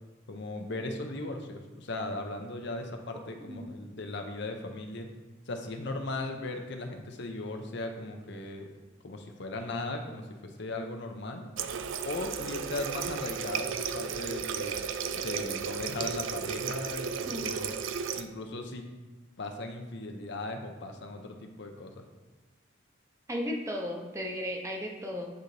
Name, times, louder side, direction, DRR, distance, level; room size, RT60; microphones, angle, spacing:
voice 1, 0.3-5.1 5.5-8.7 9.0-11.4 12.0-14.8 15.1-17.8 18.1-18.9 19.4-22.0, left 2 dB, 60° left, 4 dB, 0.7 m, -37 dB
Water tap faucet, 11.6-18.3, right 7 dB, 70° right, 0.4 m, -34 dB
voice 2, 23.3-25.3, equal, 15° right, 1 dB, 0.8 m, -35 dB
9.0 x 4.0 x 3.3 m, 1.3 s
head